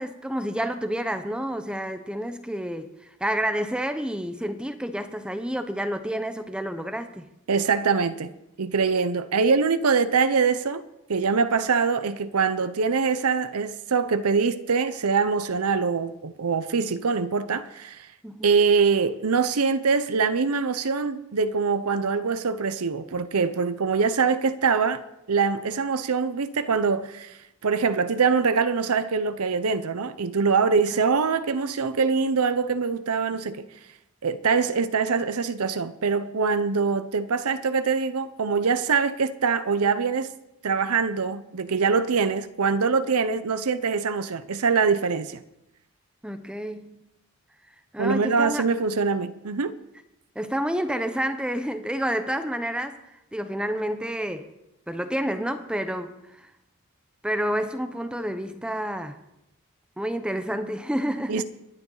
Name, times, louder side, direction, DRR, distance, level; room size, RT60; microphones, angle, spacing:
voice 1, 0.0-2.9 3.2-7.2 18.2-18.5 30.9-31.0 46.2-47.0 47.9-48.6 50.3-53.0 53.3-54.5 54.9-56.5 57.2-59.2 60.0-61.4, equal, 5° right, 0.8 m, -29 dB
voice 2, 7.5-8.3 8.6-10.8 11.1-18.1 18.4-33.7 34.2-40.3 40.6-45.4 48.0-49.8 61.3-61.4, right 5 dB, 85° right, 0.7 m, -24 dB
23.0 x 10.0 x 4.0 m
head